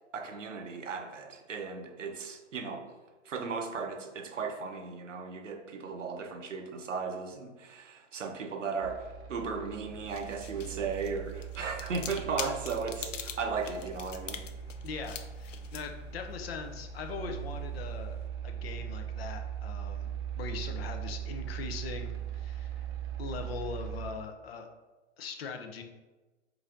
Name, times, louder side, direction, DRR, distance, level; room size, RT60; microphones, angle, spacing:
voice 1, 0.1-2.9 3.2-14.4, right 5 dB, 90° right, 4 dB, 0.8 m, -36 dB
sound 1, 8.8-24.1, right 9 dB, 20° right, 0.4 m, -40 dB
sound 2, 9.8-18.3, left 8 dB, 90° left, 0.5 m, -45 dB
voice 2, 14.8-18.2 18.4-22.9 23.2-24.7 25.2-25.8, left 5 dB, 55° left, 5 dB, 0.7 m, -41 dB
4.8 x 2.7 x 3.7 m, 1.2 s
hypercardioid pair, 125°, 36 cm